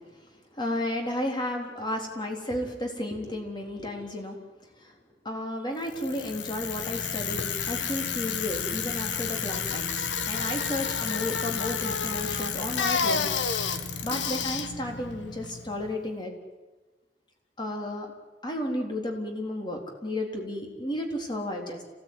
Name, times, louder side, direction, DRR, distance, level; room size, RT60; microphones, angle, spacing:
voice 1, 0.5-4.4 4.8-4.9 5.2-13.3 14.0-16.3 17.6-18.1 18.4-21.8, left 1 dB, 25° left, 2 dB, 3.9 m, -33 dB
Bicycle, 5.9-15.9, left 6 dB, 90° left, 1.6 m, -30 dB
27.5 x 17.5 x 9.6 m, 1.3 s
head